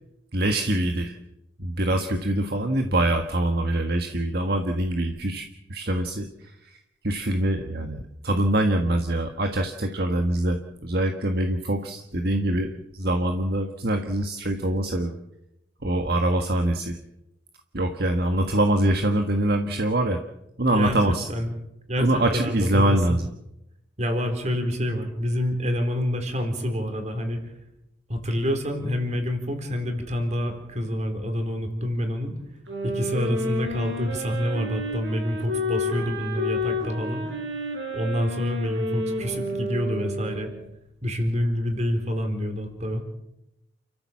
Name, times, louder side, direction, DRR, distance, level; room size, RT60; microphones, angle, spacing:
voice 1, 0.3-1.1 1.6-6.8 7.0-15.2 15.8-17.0 17.7-20.2 20.6-21.3 22.0-23.3, right 1 dB, 60° right, 5 dB, 1.5 m, -24 dB
voice 2, 21.9-23.2 24.0-27.5 28.1-32.3 32.8-37.3 37.9-40.5 41.0-43.0, equal, 40° right, 5 dB, 4.2 m, -27 dB
sound 1, 32.7-40.6, left 1 dB, 90° right, 7.9 m, -30 dB
29.5 x 14.0 x 7.4 m, 0.87 s
head